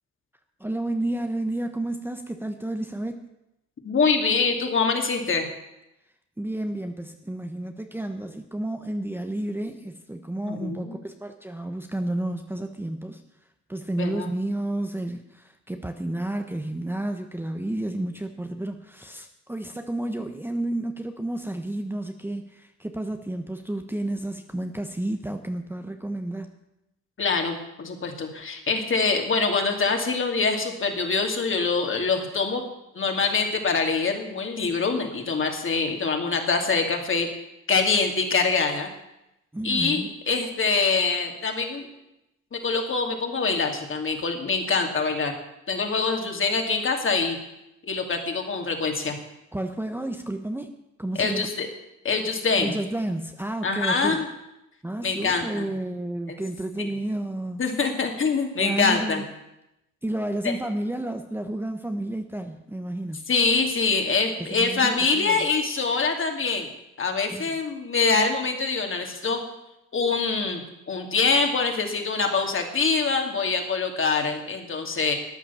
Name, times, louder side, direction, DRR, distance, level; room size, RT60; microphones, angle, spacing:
voice 1, 0.6-3.2 6.4-13.2 13.7-26.6 39.5-40.1 49.5-50.7 51.0-51.5 52.6-54.2 54.8-57.6 58.6-59.2 60.0-63.2 64.5-65.4 67.3-67.5, right 1 dB, 5° right, 5 dB, 1.0 m, -31 dB
voice 2, 3.8-5.5 10.5-11.0 14.0-14.3 27.2-32.6 32.9-37.3 37.7-38.9 39.6-41.9 42.5-45.3 45.7-47.4 47.8-49.2 51.2-51.7 52.0-52.8 53.6-54.3 55.0-55.7 56.8-56.9 57.6-59.2 60.4-60.6 63.3-66.7 67.0-69.4 69.9-70.6 70.9-75.1, left 4 dB, 40° left, 3 dB, 2.7 m, -24 dB
13.0 x 9.5 x 7.1 m, 0.89 s
cardioid pair, 90°, 30 cm